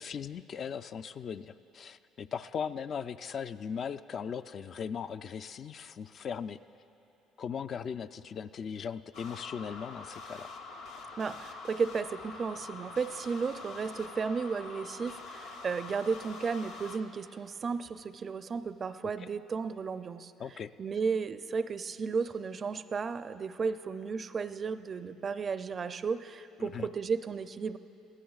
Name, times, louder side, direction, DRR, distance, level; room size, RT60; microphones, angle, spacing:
voice 1, 0.0-6.6 7.4-10.5 19.2-19.3 20.4-20.7 26.6-26.9, left 7 dB, 50° left, 11 dB, 0.3 m, -38 dB
sound 1, 9.1-17.0, left 3 dB, 85° left, 0.9 m, -45 dB
voice 2, 11.2-20.3 20.8-27.8, right 5 dB, 40° right, 13 dB, 0.4 m, -34 dB
22.5 x 16.5 x 2.4 m, 2.8 s
supercardioid pair, 70°, 0 cm